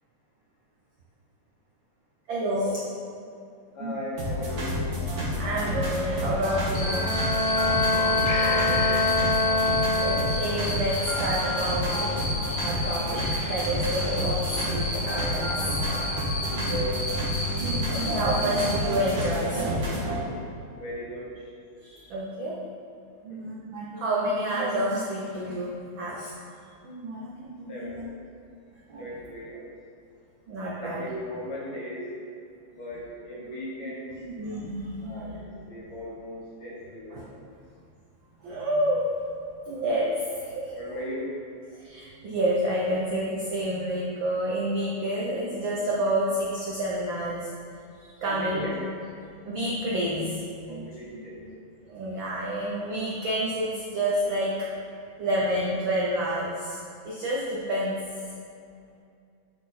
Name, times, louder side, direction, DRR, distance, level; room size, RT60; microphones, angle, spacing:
voice 1, 2.3-2.8 3.8-3.9 5.4-7.1 10.0-11.9 12.1-12.3 12.6-15.7 17.5-20.4 21.8-22.6 23.2-25.7 26.0-26.3 26.8-28.1 28.9-29.2 30.5-31.1 34.1-35.4 37.1-37.2 38.4-39.1 39.7-40.7 41.7-47.5 47.9-48.7 49.4-50.4 50.7-51.5 51.9-54.7 55.2-56.8 57.0-58.0, right 1 dB, 80° right, -6 dB, 1.0 m, -29 dB
voice 2, 3.7-4.9 7.9-9.1 16.5-17.0 20.7-21.5 23.3-23.5 27.7-28.2 29.0-29.7 30.8-32.1 32.7-34.1 35.0-37.4 40.7-41.4 48.2-48.8 50.7-51.4, equal, 55° left, -7 dB, 2.0 m, -36 dB
sound 1, 4.2-20.2, left 1 dB, 35° right, 1.2 m, -29 dB
Cricket, 6.7-18.7, left 2 dB, 85° left, 3.1 m, -33 dB
Bowed string instrument, 6.7-10.7, left 3 dB, 55° right, 2.7 m, -25 dB
8.7 x 4.1 x 4.3 m, 2.4 s
omnidirectional pair, 3.3 m